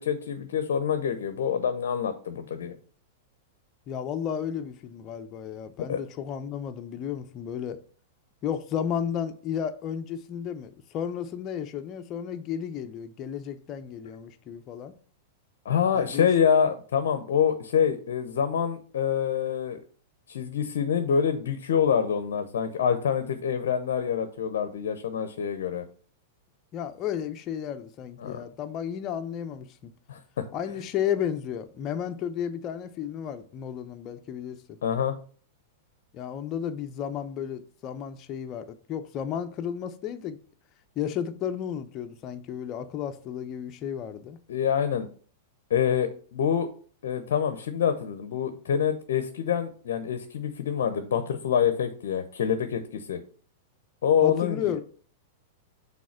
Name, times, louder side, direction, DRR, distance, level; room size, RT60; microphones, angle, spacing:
voice 1, 0.0-2.8 5.9-6.0 15.6-19.8 20.3-25.8 28.2-28.4 30.1-30.2 34.8-35.1 44.5-45.1 45.7-46.7 47.0-53.2 54.0-54.7, left 8 dB, 65° left, 0.8 m, -26 dB
voice 2, 3.9-7.8 8.4-15.0 15.9-16.3 26.7-29.9 30.5-34.8 36.1-40.4 41.0-44.4 54.2-54.8, left 9 dB, 35° left, 0.8 m, -33 dB
6.3 x 3.7 x 5.7 m
hypercardioid pair, 105°, 0 cm